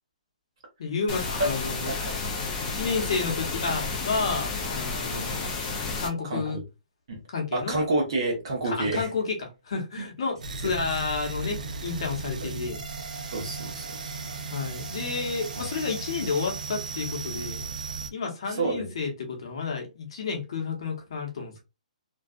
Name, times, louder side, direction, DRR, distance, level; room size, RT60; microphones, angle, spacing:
voice 1, 0.8-1.9 2.6-5.5 6.0-6.6 7.3-7.8 8.6-12.8 14.5-17.6 18.1-21.6, left 4 dB, 40° left, 0.8 m, -31 dB
sound 1, 1.1-6.1, left 4 dB, 15° left, 0.3 m, -31 dB
voice 2, 1.9-2.2 6.3-6.6 7.1-7.2 7.5-9.1 13.3-14.1 15.6-15.7 18.6-18.8, right 2 dB, 40° right, 0.9 m, -29 dB
sound 2, 10.4-18.1, right 4 dB, 70° right, 0.4 m, -36 dB
2.6 x 2.3 x 2.3 m
hypercardioid pair, 180°, 4 cm